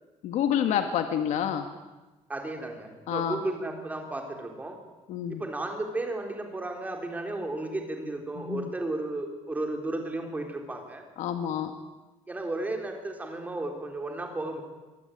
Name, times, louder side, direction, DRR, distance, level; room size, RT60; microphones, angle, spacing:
voice 1, 0.2-1.7 3.1-3.4 5.1-5.4 8.4-8.7 11.2-11.7, left 9 dB, 75° left, 7 dB, 1.8 m, -28 dB
voice 2, 2.3-4.8 5.3-11.0 12.3-14.6, right 2 dB, 10° right, 3 dB, 3.8 m, -34 dB
24.5 x 19.0 x 9.4 m, 1.2 s
cardioid pair, 175°, 12 cm